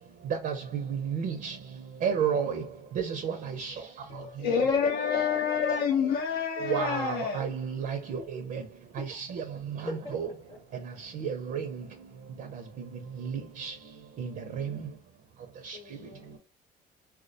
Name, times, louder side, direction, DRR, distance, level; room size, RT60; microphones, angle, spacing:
voice 1, 1.1-1.5 2.0-2.6 3.0-3.7 6.6-8.2 8.5-8.6 9.0-9.4 9.8-10.3 11.2-11.7 13.2-13.3 13.6-13.7 14.2-14.3 14.6-14.7 15.7-15.8, right 7 dB, 60° right, 0.5 m, -31 dB
voice 2, 4.1-7.4, left 6 dB, 70° left, 0.5 m, -27 dB
voice 3, 9.9-10.8 15.7-16.4, left 2 dB, 30° left, 0.7 m, -43 dB
2.2 x 2.1 x 2.6 m
cardioid pair, 110°, 17 cm